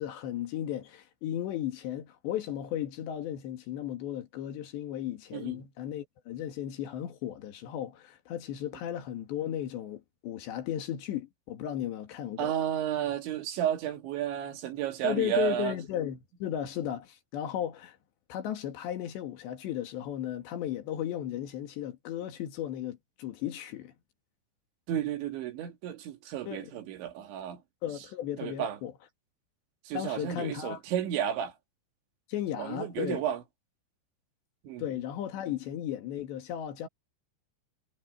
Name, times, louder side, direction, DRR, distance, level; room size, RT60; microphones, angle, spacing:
voice 1, 0.0-12.5 15.0-18.0 18.3-23.9 26.5-26.7 27.8-28.9 29.9-30.8 32.3-33.2 34.8-36.9, left 11 dB, 75° left, 4.2 m, -35 dB
voice 2, 12.4-15.7 24.9-27.6 28.4-28.8 29.9-31.5 32.6-33.4 34.6-34.9, right 10 dB, 90° right, 4.5 m, -32 dB
omnidirectional pair, 5.1 m